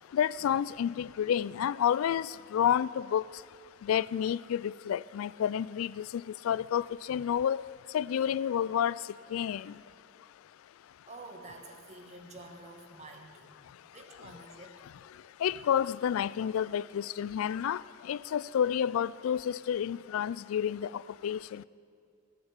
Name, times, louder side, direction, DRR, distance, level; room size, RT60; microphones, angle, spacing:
voice 1, 0.1-3.2 3.8-7.6 7.9-9.0 9.3-9.7 15.4-17.8 18.1-21.6, left 9 dB, 80° left, 20 dB, 0.3 m, -30 dB
voice 2, 11.1-13.6 13.8-14.8, right 2 dB, 35° right, 3 dB, 1.4 m, -49 dB
16.5 x 8.8 x 7.3 m, 2.3 s
head